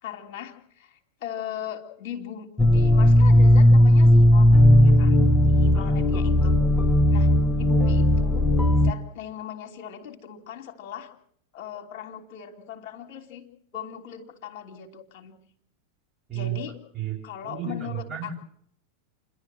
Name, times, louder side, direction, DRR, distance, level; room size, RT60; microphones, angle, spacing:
voice 1, 0.0-6.6 7.1-11.1 11.5-15.4 16.3-16.8 17.2-18.3, left 9 dB, 45° left, 5 dB, 3.1 m, -39 dB
sound 1, 2.6-8.9, left 1 dB, 15° left, 0.9 m, -17 dB
voice 2, 17.4-18.3, right 10 dB, 20° right, -3 dB, 6.7 m, -32 dB
29.5 x 11.5 x 7.5 m, 0.68 s
figure-of-eight pair, 90°, 0 cm